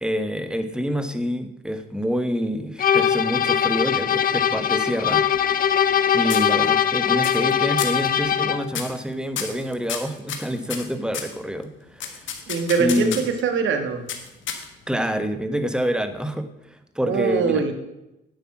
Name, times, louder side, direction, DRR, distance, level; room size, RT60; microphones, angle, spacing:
voice 1, 0.0-5.2 6.1-12.3 12.8-13.2 14.9-17.7, equal, 5° right, 9 dB, 1.2 m, -27 dB
sound 1, 2.8-8.7, left 8 dB, 45° left, 0.7 m, -21 dB
sound 2, 5.1-6.0 6.3-6.9 7.2-7.5 7.8-8.1 8.7-9.0 9.4-11.4 12.0-13.4 14.1-14.9, left 8 dB, 75° left, 1.6 m, -32 dB
voice 2, 12.5-14.1 17.1-17.7, right 5 dB, 75° right, 6 dB, 1.6 m, -22 dB
10.0 x 7.9 x 6.0 m, 0.91 s
cardioid pair, 90°, 20 cm